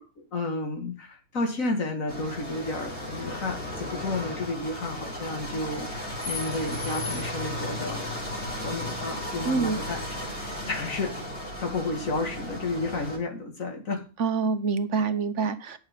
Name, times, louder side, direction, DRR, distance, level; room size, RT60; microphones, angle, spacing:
voice 1, 0.2-8.1 8.6-10.0 10.7-11.2 11.6-14.1, left 2 dB, 65° left, 2.5 m, -32 dB
sound 1, 2.1-13.2, left 1 dB, 50° left, 3.7 m, -35 dB
voice 2, 9.4-9.8 14.2-15.8, right 5 dB, 60° right, 1.3 m, -26 dB
10.5 x 7.1 x 5.8 m
omnidirectional pair, 1.5 m